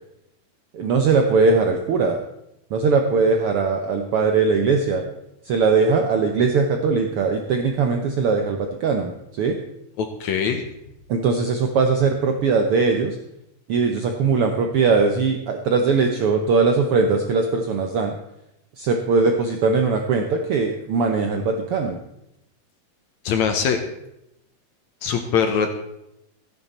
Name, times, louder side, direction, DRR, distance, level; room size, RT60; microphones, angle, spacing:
voice 1, 0.7-2.2 2.7-5.0 5.4-9.6 11.1-13.2 13.7-18.2 18.8-22.0, right 4 dB, 85° right, 4 dB, 1.2 m, -20 dB
voice 2, 10.0-10.6 23.2-23.8 25.0-25.7, left 6 dB, 70° left, 6 dB, 2.0 m, -22 dB
14.0 x 10.5 x 4.3 m, 0.83 s
omnidirectional pair, 3.8 m